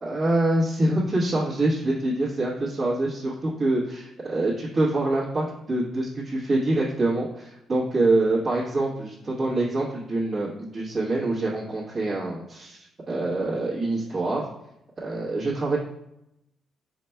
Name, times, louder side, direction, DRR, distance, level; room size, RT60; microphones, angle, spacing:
voice 1, 0.0-14.5 15.0-15.8, right 2 dB, 40° right, -9 dB, 1.2 m, -25 dB
4.9 x 4.3 x 2.2 m, 0.82 s
cardioid pair, 90°, 0 cm